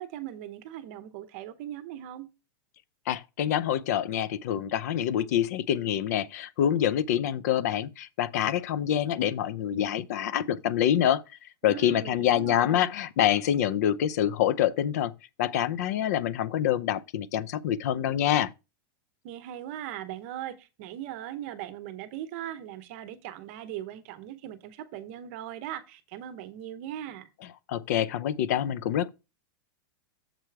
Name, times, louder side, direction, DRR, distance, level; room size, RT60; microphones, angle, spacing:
voice 1, 0.0-2.3 11.6-12.9 19.2-27.3, right 12 dB, 35° right, 0.8 m, -39 dB
voice 2, 3.1-11.2 11.6-15.1 15.4-18.5 27.7-29.1, left 10 dB, 45° left, 0.5 m, -26 dB
7.5 x 4.9 x 4.6 m
supercardioid pair, 180°, 12 cm